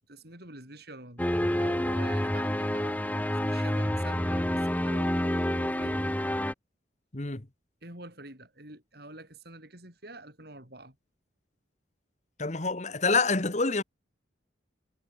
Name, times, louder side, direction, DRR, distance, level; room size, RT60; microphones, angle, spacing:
voice 1, 0.1-1.3 1.6-6.1 7.8-11.0, right 2 dB, 55° right, 7.7 m, -47 dB
sound 1, 1.2-6.5, equal, 10° left, 1.1 m, -28 dB
voice 2, 12.4-13.8, left 4 dB, 35° left, 1.4 m, -27 dB
head